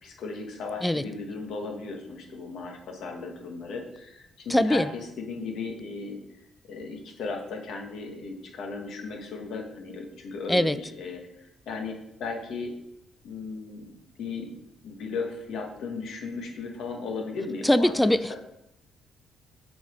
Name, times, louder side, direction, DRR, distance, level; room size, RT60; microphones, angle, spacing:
voice 1, 0.0-6.2 6.7-12.7 13.2-13.9 14.2-14.5 14.8-18.4, left 4 dB, 70° left, 2 dB, 1.5 m, -36 dB
voice 2, 4.5-4.9 10.5-10.8 17.6-18.3, left 1 dB, 10° left, 14 dB, 0.3 m, -22 dB
6.7 x 4.1 x 5.0 m, 0.82 s
supercardioid pair, 60°, 0 cm